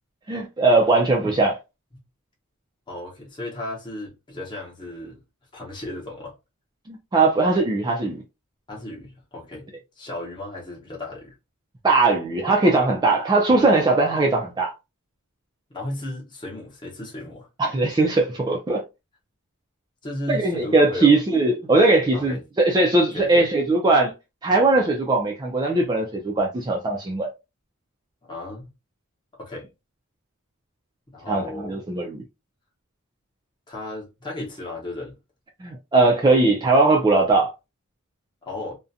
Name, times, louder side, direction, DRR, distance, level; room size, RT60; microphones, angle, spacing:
voice 1, 0.3-1.6 6.9-8.2 11.8-14.7 17.6-18.8 20.3-24.1 24.4-27.3 31.3-32.2 35.6-37.5, right 3 dB, 20° right, 0.3 m, -20 dB
voice 2, 2.9-5.2 5.5-6.3 8.7-9.7 10.0-11.3 15.7-17.5 20.0-21.2 22.1-22.4 23.1-23.4 28.3-28.7 29.4-29.7 31.1-31.8 33.7-35.1 38.4-38.8, left 2 dB, 20° left, 0.8 m, -34 dB
2.4 x 2.1 x 2.6 m
head